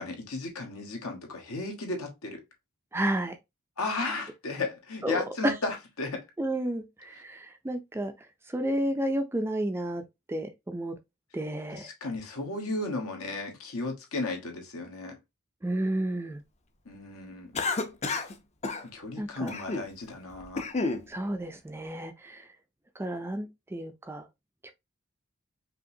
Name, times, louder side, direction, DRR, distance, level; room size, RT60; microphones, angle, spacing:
voice 1, 0.0-2.4 3.8-6.2 11.7-15.1 16.8-17.5 18.9-20.6, left 2 dB, 70° left, 1.4 m, -34 dB
voice 2, 2.9-3.3 5.0-5.5 6.4-8.1 8.5-10.0 10.3-10.9 11.3-11.9 15.6-16.4 19.2-19.5 21.1-22.5 23.0-24.2 24.6-24.7, right 1 dB, 10° right, 0.4 m, -31 dB
Cough, 17.5-18.3 18.6-18.8 19.5-19.9 20.3-21.0, left 3 dB, 30° left, 0.6 m, -30 dB
5.1 x 2.8 x 2.7 m
head